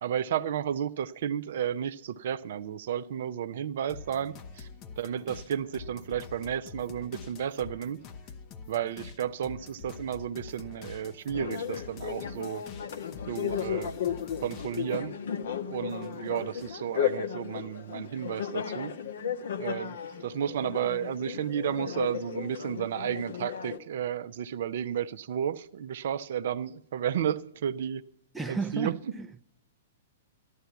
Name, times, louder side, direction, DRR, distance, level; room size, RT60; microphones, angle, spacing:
voice 1, 0.0-4.7 5.0-8.0 8.7-12.6 13.3-13.9 14.4-15.1 15.7-18.9 19.6-28.0 28.5-29.0, right 9 dB, 55° right, 0.6 m, -32 dB
sound 1, 3.9-15.1 15.4-16.8, left 5 dB, 35° left, 1.0 m, -46 dB
sound 2, 11.3-23.8, left 8 dB, 60° left, 1.3 m, -35 dB
voice 2, 28.3-29.4, right 4 dB, 5° right, 0.7 m, -34 dB
13.5 x 11.5 x 7.0 m
figure-of-eight pair, 110°, 0 cm